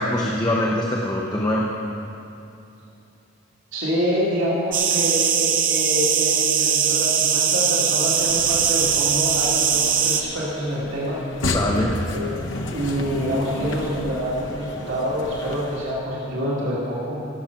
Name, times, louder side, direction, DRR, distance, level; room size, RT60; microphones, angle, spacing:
voice 1, 0.0-1.7 11.5-12.0, left 1 dB, 20° left, -3 dB, 0.8 m, -23 dB
voice 2, 3.7-11.2 12.1-12.3 12.7-17.3, equal, 70° right, -8 dB, 2.4 m, -26 dB
sound 1, 4.7-10.2, right 7 dB, 40° right, 0.7 m, -20 dB
sound 2, 8.1-16.0, left 2 dB, 65° left, 0.9 m, -32 dB
16.5 x 7.4 x 5.8 m, 2.7 s
head